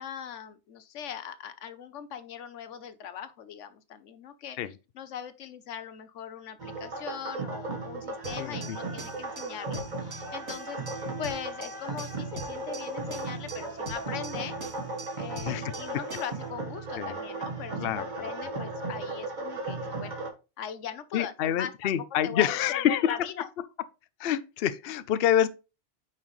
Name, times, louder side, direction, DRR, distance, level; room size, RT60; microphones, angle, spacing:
voice 1, 0.0-4.6 4.9-10.8 11.2-14.6 15.1-20.2 20.6-21.9 22.2-23.4, left 8 dB, 85° left, 1.1 m, -40 dB
sound 1, 6.6-20.3, right 2 dB, 40° right, 1.6 m, -36 dB
sound 2, 8.2-16.4, right 2 dB, 80° right, 2.9 m, -44 dB
voice 2, 8.4-8.8 15.4-15.7 17.0-17.2 17.8-18.1 21.1-23.2 24.2-25.5, left 10 dB, 60° left, 0.8 m, -27 dB
8.8 x 5.8 x 3.1 m
omnidirectional pair, 1.2 m